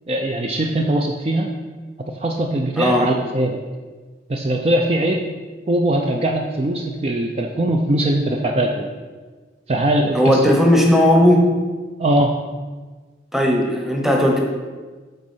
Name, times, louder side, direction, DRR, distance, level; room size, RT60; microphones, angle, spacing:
voice 1, 0.1-1.5 2.2-3.6 4.3-5.2 5.7-8.9 9.7-10.5 12.0-12.3, right 1 dB, 35° right, 2 dB, 0.4 m, -21 dB
voice 2, 2.8-3.1 10.1-11.5 13.3-14.4, equal, ahead, 0 dB, 0.9 m, -16 dB
8.0 x 4.1 x 5.4 m, 1.4 s
head